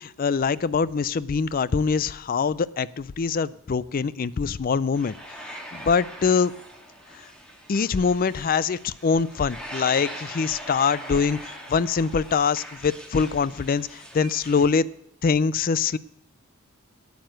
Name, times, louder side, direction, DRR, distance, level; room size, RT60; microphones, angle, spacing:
voice 1, 0.0-5.1 5.5-6.5 7.7-14.9 15.2-16.0, left 5 dB, 40° left, 19 dB, 0.4 m, -24 dB
sound 1, 4.9-14.6, right 1 dB, 5° left, 2.1 m, -41 dB
9.5 x 8.9 x 6.3 m, 0.77 s
head